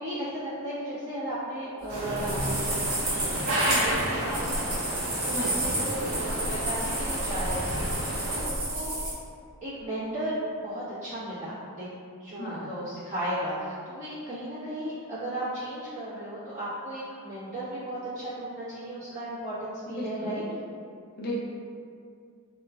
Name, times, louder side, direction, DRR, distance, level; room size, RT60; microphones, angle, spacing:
voice 1, 0.0-9.0 9.6-10.3 10.6-11.9 12.2-20.4, right 1 dB, 35° right, -13 dB, 1.2 m, -35 dB
sound 1, 1.9-8.4, right 1 dB, 75° right, 0.6 m, -31 dB
sound 2, 2.0-9.1, right 1 dB, 90° right, 1.2 m, -31 dB
voice 2, 5.3-5.6 12.4-12.8 19.9-20.3 21.2-21.4, equal, 45° left, -4 dB, 0.5 m, -35 dB
2.9 x 2.4 x 2.4 m, 2.3 s
head